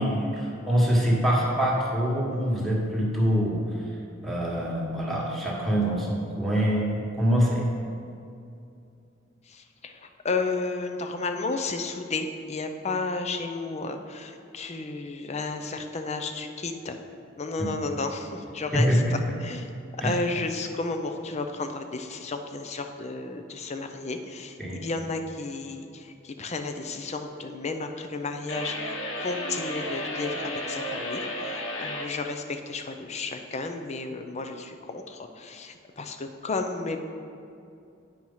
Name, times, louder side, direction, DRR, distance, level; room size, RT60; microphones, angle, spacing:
voice 1, 0.0-3.6 4.2-7.6 17.6-17.7 18.7-19.1 20.0-20.2 24.6-24.8, equal, ahead, -4 dB, 1.4 m, -24 dB
voice 2, 9.5-17.0 17.4-19.7 20.0-37.0, left 3 dB, 35° left, 7 dB, 0.5 m, -32 dB
sound 1, 28.5-32.1, left 1 dB, 75° left, 1.0 m, -33 dB
9.0 x 4.6 x 5.5 m, 2.5 s
head